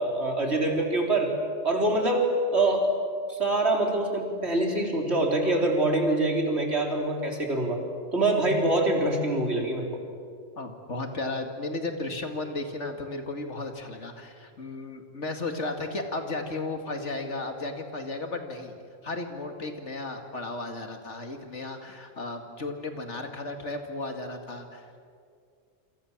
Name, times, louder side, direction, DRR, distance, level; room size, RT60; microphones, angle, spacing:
voice 1, 0.0-1.3 1.6-2.9 3.3-7.8 8.1-9.9, right 2 dB, 60° right, 1 dB, 4.2 m, -25 dB
voice 2, 10.6-18.7 19.0-24.9, left 2 dB, 70° left, 5 dB, 2.6 m, -34 dB
28.0 x 27.0 x 7.4 m, 2.2 s
omnidirectional pair, 1.2 m